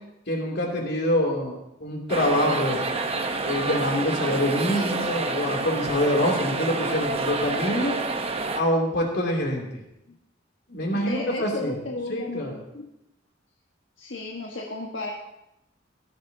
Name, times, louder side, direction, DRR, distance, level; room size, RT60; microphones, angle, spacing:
voice 1, 0.3-1.5 1.8-2.9 3.4-8.0 8.5-9.7 10.7-11.8 12.1-12.5, left 1 dB, 60° left, 0 dB, 2.9 m, -25 dB
sound 1, 2.1-8.6, right 3 dB, 30° right, 0.9 m, -28 dB
voice 2, 10.9-12.9 14.0-15.1, left 2 dB, 80° left, -2 dB, 1.4 m, -34 dB
17.0 x 12.0 x 2.8 m, 0.87 s
head